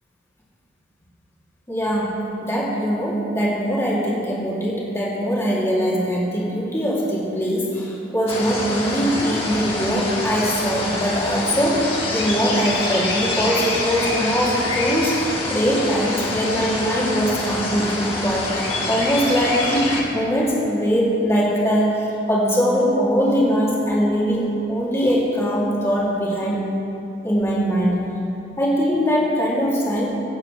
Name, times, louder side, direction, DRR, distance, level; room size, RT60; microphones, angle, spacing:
voice 1, 1.7-26.6 27.2-28.1 28.6-30.1, equal, 15° left, -7 dB, 2.7 m, -21 dB
sound 1, 8.3-20.0, left 2 dB, 30° left, 1.9 m, -26 dB
24.5 x 8.5 x 3.3 m, 2.8 s
head